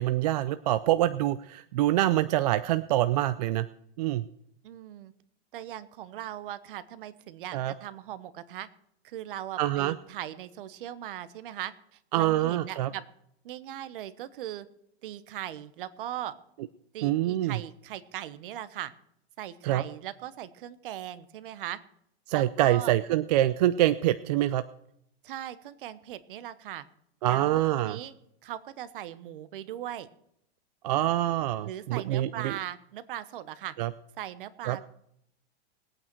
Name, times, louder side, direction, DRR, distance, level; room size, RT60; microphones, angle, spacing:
voice 1, 0.0-3.7 4.0-4.2 7.5-7.7 9.6-9.9 12.1-12.9 17.0-17.6 19.6-19.8 22.3-24.6 27.2-28.0 30.8-32.6 33.8-33.9 34.7-34.8, right 14 dB, 40° right, 12 dB, 0.4 m, -25 dB
voice 2, 4.6-5.1 5.5-8.7 9.0-13.0 13.4-14.7 15.0-16.3 16.9-18.9 19.4-21.8 22.3-22.9 25.2-26.8 27.3-28.1 28.4-30.1 31.6-33.7 34.2-34.8, right 12 dB, 55° right, 13 dB, 1.1 m, -39 dB
20.0 x 8.9 x 4.6 m, 0.74 s
supercardioid pair, 160°, 32 cm